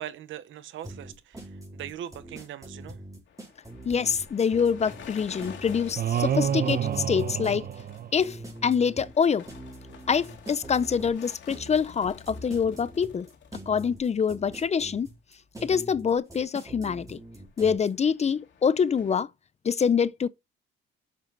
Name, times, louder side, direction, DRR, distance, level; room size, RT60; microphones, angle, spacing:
voice 1, 0.0-3.0, right 11 dB, 80° right, 1.1 m, -40 dB
sound 1, 0.8-17.9, right 1 dB, 15° right, 4.3 m, -43 dB
sound 2, 3.3-14.6 14.9-15.2 15.6-15.7 17.3-19.2, left 7 dB, 70° left, 2.2 m, -50 dB
voice 2, 3.9-7.7 8.1-9.5 10.1-13.3 13.7-15.1 15.6-17.2 17.6-19.3 19.6-20.3, left 6 dB, 35° left, 0.5 m, -25 dB
sound 3, 6.0-8.5, right 9 dB, 50° right, 0.9 m, -28 dB
7.4 x 7.3 x 4.0 m
cardioid pair, 90°, 20 cm